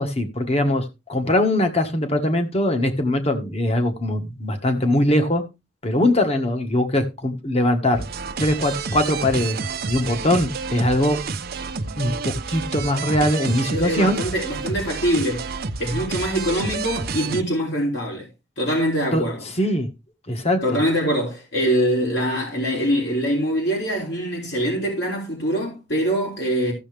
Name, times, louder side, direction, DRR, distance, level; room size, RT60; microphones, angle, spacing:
voice 1, 0.0-5.4 5.8-8.0 8.4-11.2 12.0-14.2 19.1-19.2 19.6-19.9 20.3-20.8, left 1 dB, 35° left, 1.6 m, -21 dB
sound 1, 7.9-17.4, right 4 dB, 55° right, 0.8 m, -29 dB
voice 2, 13.7-15.5 15.8-18.3 18.6-19.4 20.6-26.7, equal, 65° left, 3.3 m, -23 dB
14.5 x 7.1 x 3.5 m
head